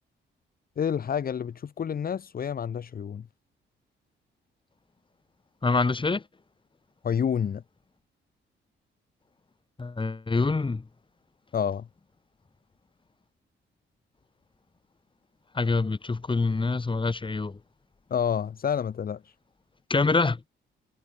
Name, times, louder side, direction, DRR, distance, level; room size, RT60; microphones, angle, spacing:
voice 1, 0.8-3.3 7.0-7.6 11.5-11.9 18.1-19.3, left 8 dB, 45° left, 1.8 m, -29 dB
voice 2, 5.6-6.2 9.8-10.9 15.5-17.6 19.9-20.4, left 3 dB, 25° left, 6.2 m, -25 dB
cardioid pair, 90°, 20 cm